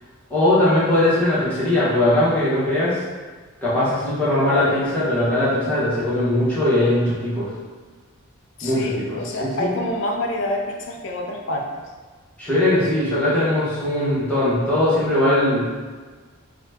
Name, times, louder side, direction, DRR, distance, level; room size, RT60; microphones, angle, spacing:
voice 1, 0.3-3.0 3.6-7.5 8.6-9.7 12.4-15.6, left 1 dB, 5° left, -12 dB, 1.0 m, -20 dB
voice 2, 8.6-11.8, left 1 dB, 60° left, 1 dB, 0.4 m, -27 dB
2.8 x 2.2 x 3.4 m, 1.4 s
head